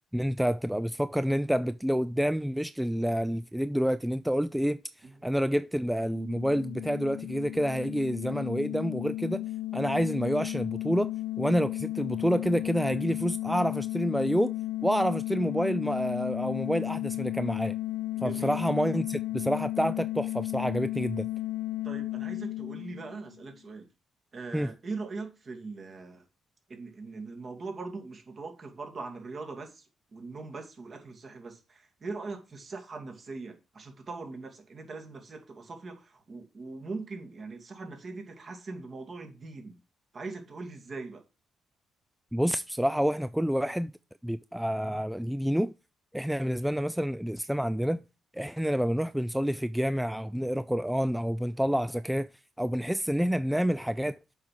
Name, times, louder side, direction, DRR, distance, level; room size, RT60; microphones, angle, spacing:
voice 1, 0.1-4.8 5.2-9.4 9.7-11.1 11.4-14.6 14.8-17.8 18.2-21.3 24.5-24.7 42.3-43.9 44.2-45.7 46.1-48.0 48.3-52.3 52.6-54.2, equal, 5° right, 0.3 m, -28 dB
voice 2, 5.0-5.3 18.2-18.6 21.8-23.9 24.3-26.2 26.7-29.9 30.1-39.8 40.1-41.2 44.7-45.0 46.5-46.6, right 3 dB, 40° right, 2.4 m, -41 dB
sound 1, 6.0-23.5, left 16 dB, 80° left, 0.3 m, -34 dB
7.3 x 4.9 x 5.9 m
cardioid pair, 90°, 0 cm